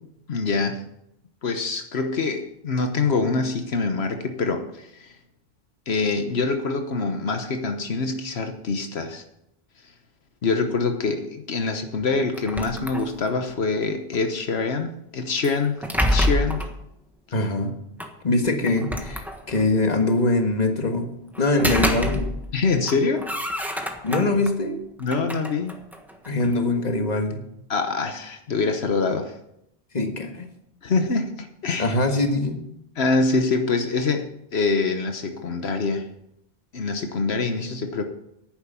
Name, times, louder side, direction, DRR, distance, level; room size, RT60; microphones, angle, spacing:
voice 1, 0.3-0.8 1.4-5.2 5.9-9.2 10.4-16.7 22.5-23.3 25.0-25.8 27.7-29.4 30.8-31.9 33.0-36.1 36.7-38.0, left 4 dB, 80° left, 6 dB, 1.3 m, -25 dB
sound 1, 12.3-13.5 15.4-16.8 18.0-18.1 18.7-19.8 21.3-22.6 22.9-24.5 25.0-26.6, equal, ahead, 1.3 m, -27 dB
voice 2, 17.3-17.7 18.2-22.3 24.0-24.8 26.2-27.4 29.9-30.5 31.8-32.6, left 2 dB, 40° left, 5 dB, 1.7 m, -23 dB
11.0 x 9.5 x 6.9 m, 0.79 s
omnidirectional pair, 1.1 m